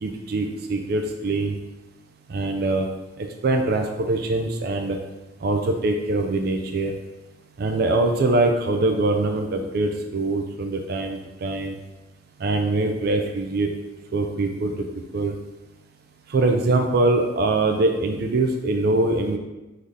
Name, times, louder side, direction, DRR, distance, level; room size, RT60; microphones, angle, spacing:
voice 1, 0.0-1.6 2.3-2.9 3.2-5.0 5.4-6.9 7.6-11.7 12.4-13.7 14.1-14.7 15.1-15.3 16.3-19.4, right 2 dB, 55° right, 4 dB, 0.4 m, -23 dB
3.9 x 2.7 x 4.8 m, 1.0 s
head